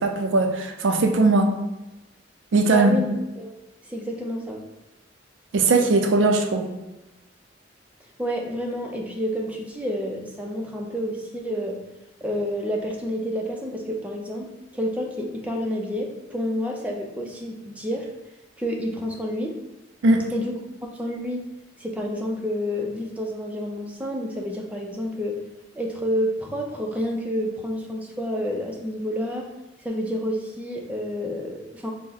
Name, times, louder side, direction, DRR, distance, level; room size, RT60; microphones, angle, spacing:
voice 1, 0.0-1.5 2.5-3.0 5.5-6.7 20.0-20.2, right 3 dB, 80° right, 5 dB, 0.5 m, -19 dB
voice 2, 2.7-3.1 3.4-3.5 3.8-4.6 8.2-11.8 12.2-14.5 14.7-18.1 18.6-19.6 20.3-20.6 20.9-21.4 21.8-25.4 25.7-29.5 29.8-31.9, equal, 5° right, 0 dB, 0.4 m, -29 dB
3.5 x 2.1 x 4.0 m, 1.0 s
head